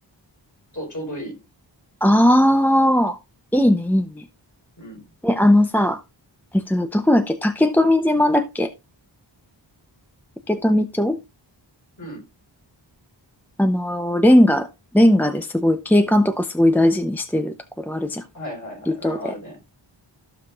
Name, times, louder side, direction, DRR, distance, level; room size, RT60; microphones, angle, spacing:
voice 1, 0.7-1.4 4.8-5.0 12.0-12.2 18.3-19.7, equal, 40° left, 5.1 m, -34 dB
voice 2, 2.0-3.2 3.5-4.2 5.2-6.0 6.5-8.7 10.5-11.2 13.6-14.7 14.9-18.2 18.9-19.2, left 1 dB, 5° left, 0.7 m, -18 dB
15.0 x 5.8 x 2.4 m
wide cardioid pair, 55°, 45 cm